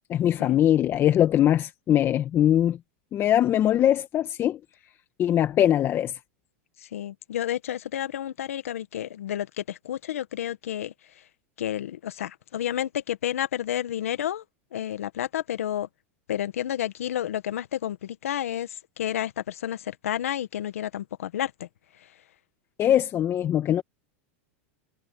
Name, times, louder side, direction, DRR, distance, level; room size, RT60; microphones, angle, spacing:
voice 1, 0.1-2.8 3.1-4.6 5.2-6.2 22.8-23.8, left 11 dB, 35° left, 1.6 m, -22 dB
voice 2, 6.9-10.9 11.6-14.4 14.7-15.9 16.3-21.7, left 11 dB, 85° left, 1.7 m, -30 dB
hypercardioid pair, 115°, 7 cm